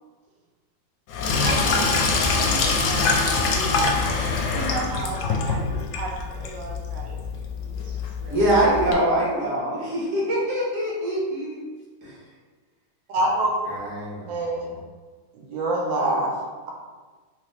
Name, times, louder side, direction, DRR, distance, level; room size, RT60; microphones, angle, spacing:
Sink (filling or washing), 1.1-8.9, left 4 dB, 75° left, 1.0 m, -24 dB
voice 1, 1.4-8.6 9.1-9.4 10.8-11.1, right 3 dB, 70° right, 0 dB, 1.2 m, -36 dB
voice 2, 8.3-11.6 12.0-12.1 13.7-14.7, right 1 dB, 50° right, -6 dB, 1.2 m, -24 dB
voice 3, 13.1-13.5 14.3-14.7 15.3-16.3, right 1 dB, 90° right, -1 dB, 1.5 m, -24 dB
3.7 x 3.0 x 3.2 m, 1.4 s
omnidirectional pair, 2.0 m